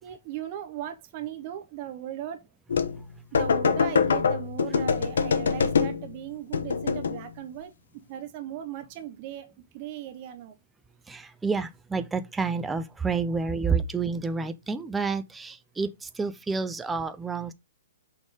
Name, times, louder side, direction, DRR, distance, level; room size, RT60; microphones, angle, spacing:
voice 1, 0.0-2.4 3.3-7.7 8.1-10.5, right 11 dB, 25° right, 0.8 m, -38 dB
sound 1, 2.7-3.0 3.3-6.1 6.5-7.3, left 6 dB, 85° left, 0.9 m, -24 dB
voice 2, 11.1-17.5, right 4 dB, 5° right, 0.4 m, -29 dB
6.2 x 3.6 x 4.8 m
hypercardioid pair, 180°, 0 cm